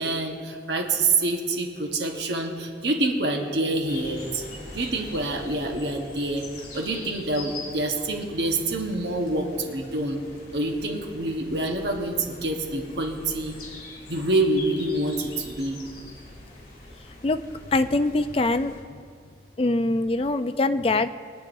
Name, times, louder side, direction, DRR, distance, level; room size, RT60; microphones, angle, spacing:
voice 1, 0.0-4.4 4.7-6.5 6.7-10.2 10.5-13.6 14.1-15.8, right 2 dB, 65° right, 2 dB, 1.2 m, -26 dB
sound 1, 3.9-18.8, left 2 dB, 50° left, 2.7 m, -43 dB
voice 2, 17.7-18.7 19.6-21.1, left 2 dB, 30° left, 10 dB, 0.3 m, -23 dB
22.0 x 9.3 x 2.6 m, 2.2 s
head